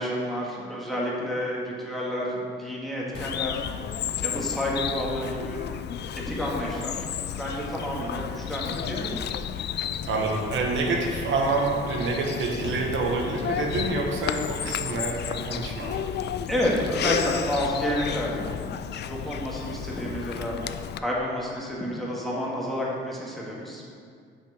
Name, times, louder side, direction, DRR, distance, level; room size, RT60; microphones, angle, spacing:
voice 1, 0.0-3.6 4.2-5.7 6.3-9.2 14.6-14.8 16.5-20.6 21.0-23.9, equal, ahead, -5 dB, 1.9 m, -30 dB
Bird vocalization bird call bird song, 3.1-21.0, left 9 dB, 55° left, 0.4 m, -32 dB
voice 2, 10.1-16.0, right 3 dB, 70° right, 0 dB, 1.2 m, -27 dB
7.3 x 5.7 x 4.9 m, 2.1 s
cardioid pair, 95°, 21 cm